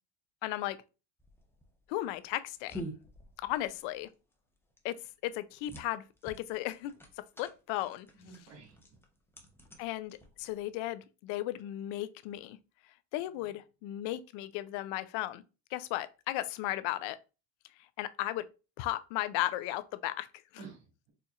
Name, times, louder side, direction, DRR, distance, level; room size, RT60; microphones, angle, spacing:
voice 1, 0.4-0.8 1.9-2.8 3.4-4.1 4.8-5.0 5.2-6.9 7.4-8.1 9.8-12.6 13.1-15.4 15.7-17.2 18.0-18.5 18.8-20.3, left 15 dB, 65° left, 0.5 m, -35 dB
sound 1, 1.2-10.7, equal, 5° left, 0.6 m, -49 dB
voice 2, 8.1-9.0 13.2-13.6 20.6-21.1, right 4 dB, 80° right, 1.6 m, -53 dB
4.3 x 2.5 x 2.3 m
supercardioid pair, 95°, 49 cm